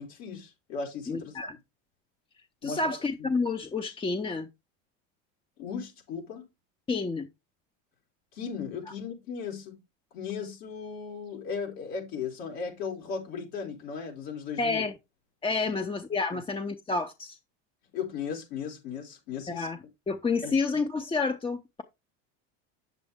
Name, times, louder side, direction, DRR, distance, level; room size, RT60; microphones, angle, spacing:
voice 1, 0.0-1.5 2.6-3.3 5.6-6.4 8.3-9.8 10.1-14.8 16.3-16.4 17.9-19.7 20.4-20.6, left 6 dB, 80° left, 4.9 m, -37 dB
voice 2, 1.1-1.6 2.6-4.5 6.9-7.3 14.6-14.9 15.4-17.4 19.5-19.8 20.1-21.8, left 4 dB, 15° left, 0.6 m, -29 dB
8.7 x 7.4 x 3.5 m
supercardioid pair, 115°, 33 cm